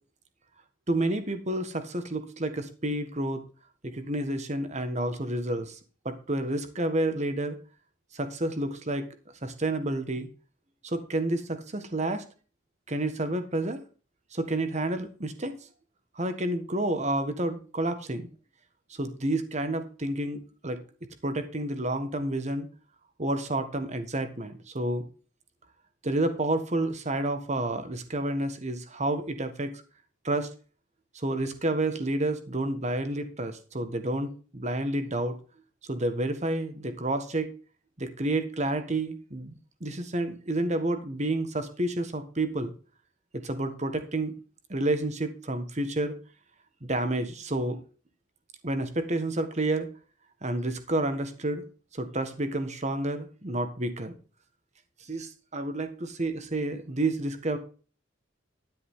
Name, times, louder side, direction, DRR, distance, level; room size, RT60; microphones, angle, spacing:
voice 1, 0.9-3.4 3.8-5.8 6.0-7.5 8.1-9.1 9.4-10.3 10.8-12.2 12.9-13.8 14.3-15.5 16.1-18.3 19.0-20.8 21.2-22.7 23.2-25.0 26.0-29.7 30.2-30.5 31.1-35.4 35.9-37.5 38.0-39.5 39.8-42.7 43.3-44.3 44.7-46.2 46.8-47.8 48.6-49.9 50.4-51.6 51.9-54.1 55.1-57.6, right 1 dB, 40° right, 9 dB, 1.5 m, -30 dB
11.0 x 9.8 x 3.8 m, 0.37 s
head